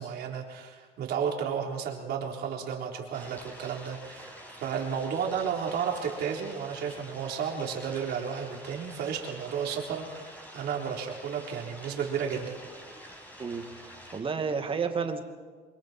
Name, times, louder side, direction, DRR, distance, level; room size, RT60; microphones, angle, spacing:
voice 1, 0.0-4.3 4.6-12.6, right 7 dB, 75° right, 0 dB, 3.9 m, -33 dB
sound 1, 3.1-14.2, equal, 10° left, 5.6 m, -47 dB
voice 2, 13.4-15.2, right 5 dB, 30° right, 5 dB, 2.3 m, -31 dB
29.0 x 23.5 x 4.5 m, 1.5 s
cardioid pair, 110°, 17 cm